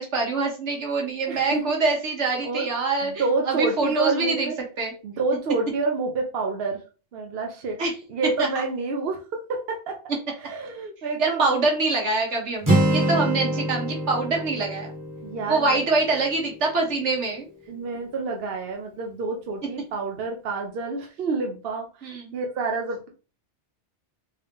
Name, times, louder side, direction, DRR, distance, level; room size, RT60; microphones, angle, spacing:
voice 1, 0.0-4.5 4.8-4.9 7.8-7.9 11.2-14.9 15.5-17.5 22.0-22.3, right 3 dB, 75° right, 0 dB, 1.5 m, -25 dB
voice 2, 1.3-1.6 2.4-2.7 3.0-4.6 5.0-6.8 7.1-7.8 8.1-10.0 10.4-11.5 15.2-15.8 17.7-23.1, right 3 dB, 60° right, 2 dB, 0.9 m, -28 dB
Acoustic guitar, 12.6-16.6, right 1 dB, 15° right, 1.0 m, -25 dB
3.8 x 2.7 x 3.4 m, 0.35 s
omnidirectional pair, 1.2 m